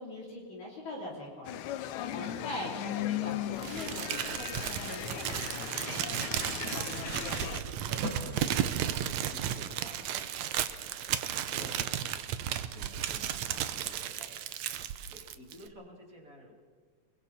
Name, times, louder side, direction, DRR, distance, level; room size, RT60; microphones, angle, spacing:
voice 1, 0.0-1.6 2.1-5.8, left 1 dB, 50° left, -4 dB, 4.9 m, -42 dB
sound 1, 1.4-7.6, left 12 dB, 90° left, 1.6 m, -37 dB
Telephone, 2.8-3.0 5.0-9.8 10.1-11.7, right 1 dB, 55° right, 5.0 m, -45 dB
Crumpling crinkling, 3.6-15.7, right 10 dB, 80° right, 1.5 m, -34 dB
voice 2, 6.6-16.5, equal, 25° right, -1 dB, 3.4 m, -52 dB
30.0 x 22.0 x 4.3 m, 1.5 s
omnidirectional pair, 4.4 m